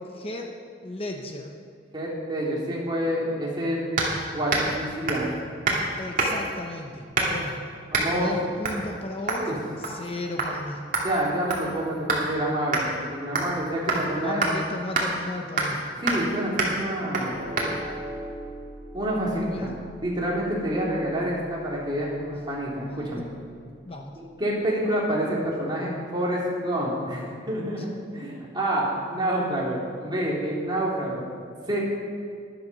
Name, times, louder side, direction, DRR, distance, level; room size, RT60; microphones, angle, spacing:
voice 1, 0.1-0.5 0.8-1.6 6.0-7.6 8.0-9.5 9.8-10.9 14.2-15.8 19.5-19.8 23.8-24.2, left 1 dB, 30° left, 2 dB, 0.9 m, -35 dB
voice 2, 1.9-3.9 4.3-5.3 7.9-8.3 9.4-9.6 11.0-14.4 16.0-17.4 18.9-19.7 20.0-23.3 24.4-31.2 31.7-31.8, right 1 dB, 25° right, -5 dB, 3.2 m, -28 dB
sound 1, 4.0-4.2 4.5-4.8 5.1-5.3 5.6-5.8 6.2-6.5 7.1-7.5 7.9-8.1 8.6-8.8 9.3-9.5 9.8-10.1 10.4-10.5 10.9-12.3 12.7-12.9 13.4-13.6 13.9-14.0 14.4-14.5 14.9-15.1 15.6-15.8 16.1-16.3 16.6-16.8 17.1-17.3 17.6-17.7, right 3 dB, 45° right, 2.5 m, -26 dB
sound 2, 17.3-23.8, equal, 75° left, 4.2 m, -42 dB
13.0 x 11.0 x 5.4 m, 2.2 s
head